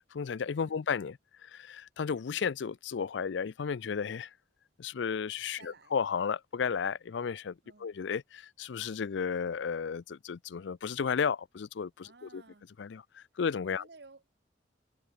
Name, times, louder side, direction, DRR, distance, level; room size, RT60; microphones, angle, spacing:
voice 1, 0.1-4.3 4.8-12.4 12.8-13.9, left 6 dB, 75° left, 0.4 m, -33 dB
voice 2, 5.6-5.9 7.6-7.9 12.0-12.7 13.4-13.5 13.8-14.3, right 3 dB, 60° right, 1.0 m, -56 dB
head